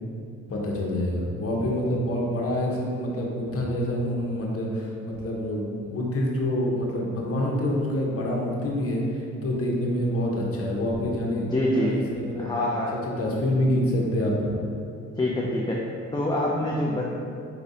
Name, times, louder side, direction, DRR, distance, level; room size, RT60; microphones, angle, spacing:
voice 1, 0.5-12.8 13.2-14.5, left 1 dB, 50° left, -2 dB, 0.9 m, -27 dB
voice 2, 11.4-12.0 12.3-12.9 15.2-15.9 16.1-17.1, left 1 dB, 15° left, -4 dB, 0.4 m, -25 dB
4.9 x 3.3 x 2.7 m, 2.5 s
cardioid pair, 90°, 30 cm